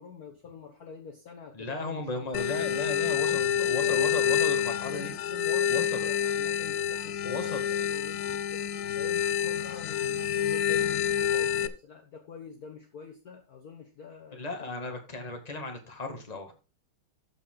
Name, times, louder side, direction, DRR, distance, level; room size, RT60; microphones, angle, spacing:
voice 1, 0.0-2.8 3.2-4.3 4.6-8.6 8.9-14.9, left 6 dB, 50° left, 3 dB, 1.5 m, -45 dB
voice 2, 1.5-5.1 5.7-6.0 7.2-7.6 14.3-16.5, left 2 dB, 20° left, 3 dB, 2.0 m, -35 dB
sound 1, 2.3-11.7, left 8 dB, 70° left, 0.9 m, -28 dB
13.5 x 5.4 x 3.9 m, 0.30 s
omnidirectional pair, 2.3 m